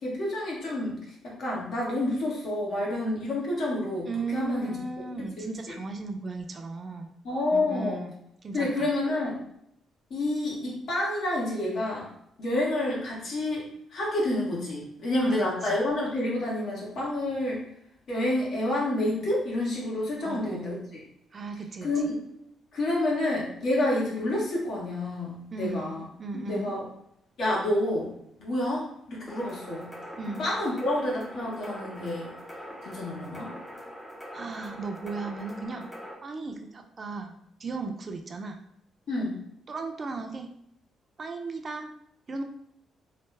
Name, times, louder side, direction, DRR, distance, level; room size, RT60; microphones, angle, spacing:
voice 1, 0.0-1.0 1.2-4.8 5.2-5.8 7.2-8.1 8.5-9.4 10.1-12.1 12.4-17.6 18.1-21.0 21.8-22.2 22.7-26.0 26.3-26.8 27.4-28.1 28.4-30.0 30.4-32.3 32.8-33.5 39.1-39.4, left 1 dB, 65° left, -4 dB, 1.2 m, -29 dB
voice 2, 4.1-7.1 7.5-8.2 8.4-8.9 15.2-15.4 20.2-20.7 21.3-21.9 25.5-26.7 30.2-30.4 34.3-35.9 36.2-38.6 39.7-40.5 41.2-41.9 42.3-42.4, right 3 dB, 40° right, 5 dB, 0.4 m, -36 dB
sound 1, 29.3-36.1, equal, 15° left, 0.7 m, -43 dB
3.1 x 2.0 x 3.2 m, 0.73 s
cardioid pair, 90°, 0 cm